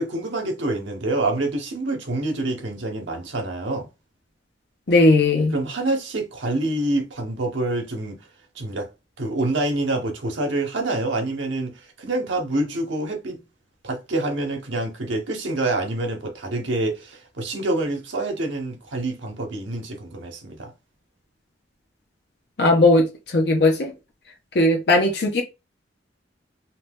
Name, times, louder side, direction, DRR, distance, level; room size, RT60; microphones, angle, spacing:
voice 1, 0.0-3.9 5.5-8.2 8.5-8.9 9.2-13.4 13.8-20.7, right 2 dB, 80° right, 0.8 m, -26 dB
voice 2, 4.9-5.5 22.6-23.1 23.3-23.9 24.5-25.4, left 2 dB, 60° left, 0.6 m, -17 dB
2.7 x 2.2 x 3.3 m
head